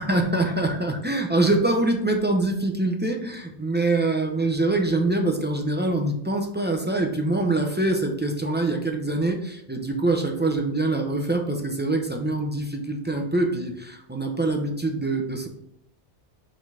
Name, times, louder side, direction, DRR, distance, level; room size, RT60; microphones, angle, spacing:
voice 1, 0.0-15.5, right 2 dB, 15° right, 2 dB, 0.5 m, -24 dB
5.1 x 3.9 x 5.6 m, 0.72 s
omnidirectional pair, 1.2 m